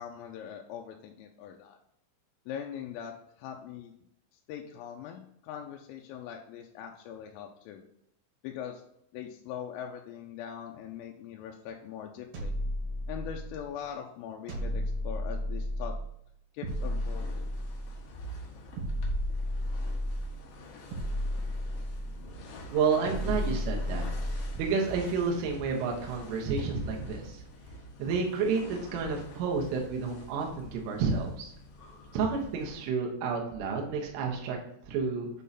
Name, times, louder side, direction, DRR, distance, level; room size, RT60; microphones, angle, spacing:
voice 1, 0.0-1.8 2.5-3.9 4.5-7.8 8.4-8.8 9.1-12.5 13.1-16.0 16.5-17.5, left 9 dB, 85° left, 2 dB, 3.2 m, -41 dB
sound 1, 12.3-13.7 14.5-16.1 16.6-18.0 18.8-20.4 20.9-22.3 23.0-24.7, left 1 dB, 60° right, 2.7 m, -33 dB
sound 2, 16.7-32.9, equal, 70° left, 2.9 m, -46 dB
voice 2, 22.7-24.0 24.6-27.4 28.0-31.5 32.1-34.6 34.9-35.3, right 5 dB, 75° right, 1 dB, 3.5 m, -30 dB
8.3 x 3.8 x 4.1 m, 0.73 s
omnidirectional pair, 5.9 m